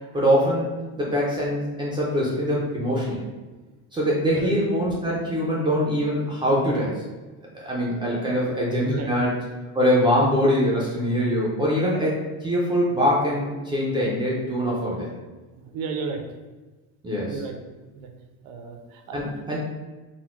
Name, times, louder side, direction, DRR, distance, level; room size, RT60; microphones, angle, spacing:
voice 1, 0.1-3.2 3.9-7.0 7.6-9.4 9.7-15.1 17.0-17.4 19.1-19.6, equal, 10° right, -5 dB, 0.5 m, -23 dB
voice 2, 15.6-16.2 17.3-17.5 17.9-18.1 18.4-19.2, right 5 dB, 60° right, 4 dB, 0.7 m, -32 dB
4.1 x 2.2 x 4.3 m, 1.2 s
cardioid pair, 160°, 38 cm